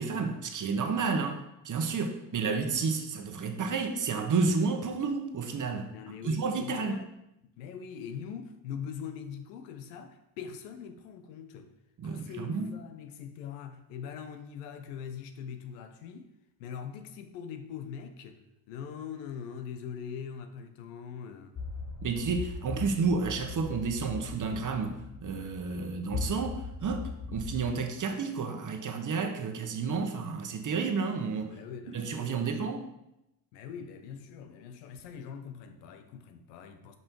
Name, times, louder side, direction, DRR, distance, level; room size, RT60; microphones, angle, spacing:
voice 1, 0.0-5.9 6.2-7.0 12.0-12.7 22.0-31.5 31.9-32.8, right 4 dB, 40° right, 1.1 m, -31 dB
voice 2, 5.9-7.1 7.6-11.7 12.0-16.3 16.6-21.6 31.4-32.7 33.5-37.0, left 7 dB, 85° left, 0.8 m, -42 dB
sound 1, 21.5-27.7, left 4 dB, 30° left, 1.8 m, -39 dB
5.4 x 5.4 x 4.6 m
hypercardioid pair, 65°, 48 cm